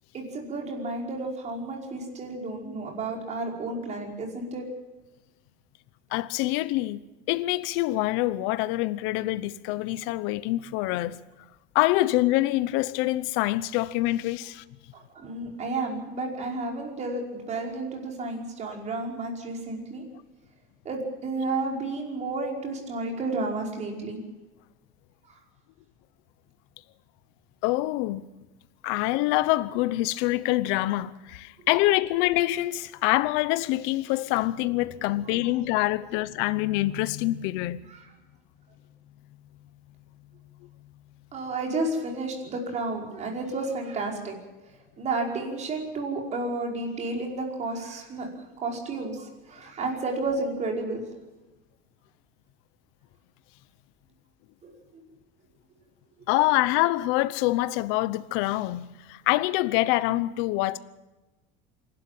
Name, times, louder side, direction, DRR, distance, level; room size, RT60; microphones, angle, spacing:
voice 1, 0.1-4.6 15.2-20.0 20.9-24.2 37.9-38.1 41.3-44.3 45.0-48.3 48.6-51.0 54.6-54.7, right 2 dB, 35° right, 5.2 m, -31 dB
voice 2, 6.1-7.0 7.3-11.2 11.7-14.6 27.6-28.3 28.8-37.8 56.3-60.8, left 17 dB, 75° left, 0.9 m, -25 dB
26.5 x 12.0 x 8.9 m
cardioid pair, 140°, 20 cm